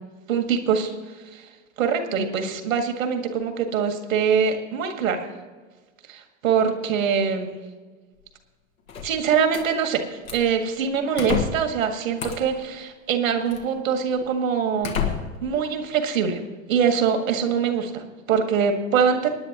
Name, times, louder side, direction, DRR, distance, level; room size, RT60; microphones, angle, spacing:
voice 1, 0.3-0.9 1.3-1.5 1.8-5.3 6.1-7.6 9.0-10.1 10.3-14.9 15.4-16.4 16.7-19.3, right 6 dB, 75° right, 5 dB, 1.9 m, -23 dB
sound 1, 8.9-9.7 10.2-10.6 11.2-11.7 12.2-12.6 13.5-13.6 14.2-14.3 14.8-15.5, left 7 dB, 85° left, 1.8 m, -29 dB
25.0 x 10.0 x 3.0 m, 1.4 s
hypercardioid pair, 90°, 40 cm